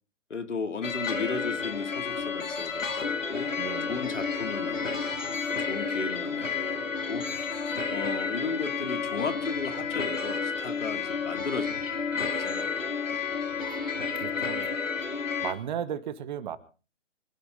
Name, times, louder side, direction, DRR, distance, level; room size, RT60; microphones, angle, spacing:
voice 1, 0.3-3.5 3.8-11.9 12.2-12.7, left 4 dB, 70° left, 7 dB, 3.0 m, -36 dB
sound 1, 0.8-15.5, left 5 dB, 85° left, 2.8 m, -31 dB
voice 2, 3.6-4.0 13.6-14.7 15.4-16.6, right 9 dB, 35° right, 13 dB, 1.5 m, -36 dB
24.0 x 13.0 x 4.0 m, 0.36 s
figure-of-eight pair, 140°, 38 cm